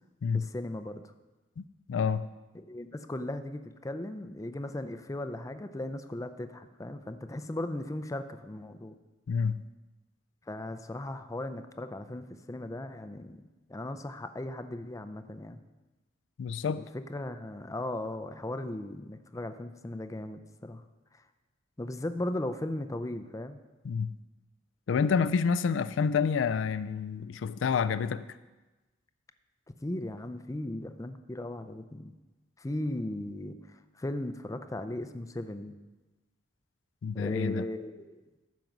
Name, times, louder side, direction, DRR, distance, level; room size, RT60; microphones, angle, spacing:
voice 1, 0.3-1.1 2.5-9.0 10.5-13.4 13.7-15.6 16.8-20.8 21.1-21.2 21.8-23.6 29.8-32.1 32.6-35.7 37.1-38.2, left 1 dB, 15° left, 0.5 m, -37 dB
voice 2, 1.6-2.3 9.3-9.6 16.4-16.8 23.8-24.1 24.9-28.3 37.0-37.7, left 6 dB, 70° left, 0.4 m, -28 dB
14.0 x 5.3 x 5.9 m
head